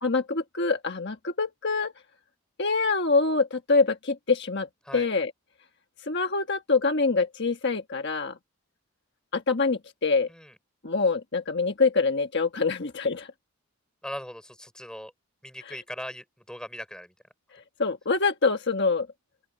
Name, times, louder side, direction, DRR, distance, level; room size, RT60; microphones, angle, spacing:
voice 1, 0.0-1.9 2.6-5.3 6.0-8.4 9.3-10.3 10.8-13.3 15.7-15.8 17.8-19.1, left 4 dB, 50° left, 1.4 m, -25 dB
voice 2, 14.0-15.1 15.4-17.1, equal, 5° left, 5.4 m, -39 dB
open air
head